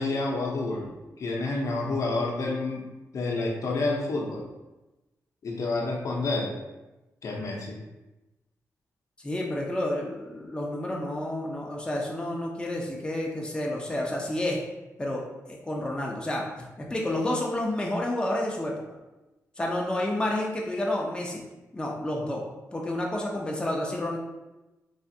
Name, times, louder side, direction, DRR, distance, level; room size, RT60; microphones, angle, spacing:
voice 1, 0.0-2.9 3.1-4.5 5.4-6.5 7.2-7.8, left 2 dB, 60° left, -1 dB, 0.6 m, -29 dB
voice 2, 9.2-14.6 15.0-16.4 16.8-18.8 19.6-21.4 21.7-22.4 22.7-24.2, left 1 dB, 15° left, -2 dB, 0.5 m, -30 dB
3.3 x 2.3 x 2.7 m, 1.0 s
cardioid pair, 85°, 6 cm